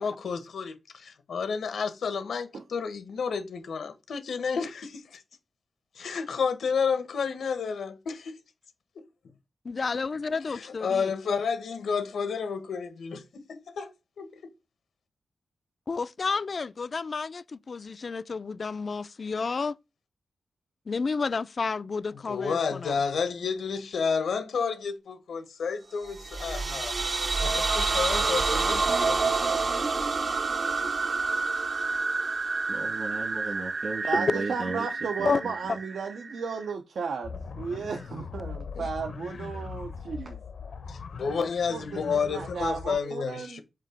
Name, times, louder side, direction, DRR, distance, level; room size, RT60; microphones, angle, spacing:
voice 1, 0.0-5.2 5.9-8.4 8.9-9.0 10.5-13.9 14.2-14.3 22.2-27.0 27.4-29.7 38.7-38.9 40.9-43.6, left 5 dB, 85° left, 1.3 m, -31 dB
voice 2, 9.6-11.1 15.9-19.8 20.9-22.9 35.2-35.4, left 4 dB, 45° left, 0.4 m, -31 dB
sound 1, 26.1-36.7, right 4 dB, 45° right, 0.6 m, -28 dB
voice 3, 32.7-35.6 40.2-40.3, right 3 dB, 65° right, 2.3 m, -36 dB
voice 4, 34.1-40.3 41.3-43.6, right 5 dB, 80° right, 0.7 m, -34 dB
sound 2, 37.2-43.0, left 5 dB, 65° left, 0.8 m, -40 dB
7.5 x 2.9 x 5.1 m
wide cardioid pair, 130°, 0 cm